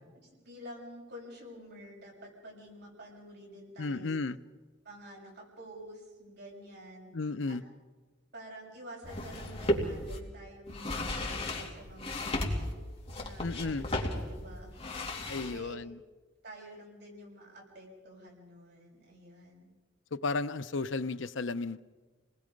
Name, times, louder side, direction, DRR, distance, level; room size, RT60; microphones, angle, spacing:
voice 1, 0.3-4.1 4.8-7.1 7.4-7.6 8.3-12.7 13.2-13.9 14.3-14.7 15.5-15.8 16.4-19.7, equal, 60° right, -1 dB, 6.9 m, -49 dB
voice 2, 3.8-4.4 7.1-7.6 13.4-13.8 15.3-16.0 20.1-21.8, left 3 dB, 80° left, 13 dB, 0.7 m, -33 dB
sound 1, 9.0-10.2 10.7-15.6, left 1 dB, 35° left, 2.8 m, -34 dB
28.0 x 20.0 x 5.3 m, 1.3 s
head